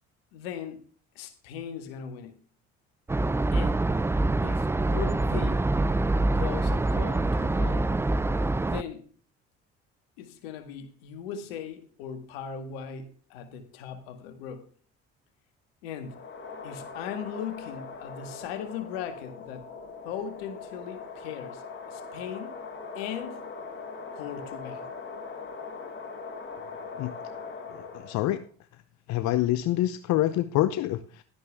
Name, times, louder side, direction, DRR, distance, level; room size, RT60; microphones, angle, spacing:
voice 1, 0.3-0.8 1.2-2.4 3.5-3.8 4.4-5.7 6.2-7.9 8.7-9.1 10.2-14.6 15.8-16.2 16.6-19.7 20.0-21.6 21.9-22.6 23.0-23.5 24.2-24.9, left 8 dB, 90° left, 1.8 m, -38 dB
sound 1, 3.1-8.8, right 2 dB, 10° right, 0.4 m, -25 dB
sound 2, 16.0-28.5, left 4 dB, 40° left, 3.1 m, -41 dB
voice 2, 28.0-28.4 29.1-31.2, left 14 dB, 65° left, 0.8 m, -26 dB
11.5 x 10.5 x 3.5 m
supercardioid pair, 70°, 30 cm